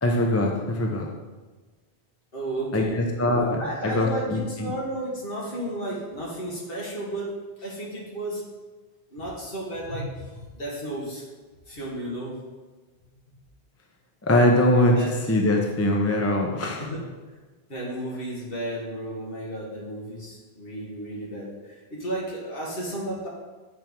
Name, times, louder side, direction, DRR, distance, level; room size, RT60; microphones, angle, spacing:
voice 1, 0.0-1.1 2.7-4.7 14.3-15.0 15.3-16.8, left 1 dB, 20° left, 1 dB, 0.5 m, -22 dB
voice 2, 2.3-3.0 3.6-7.3 7.6-8.4 9.1-11.2 11.7-12.4 14.9-15.1 16.8-17.1 17.7-23.3, right 1 dB, 55° left, -5 dB, 1.9 m, -33 dB
7.7 x 4.5 x 3.6 m, 1.3 s
omnidirectional pair, 1.1 m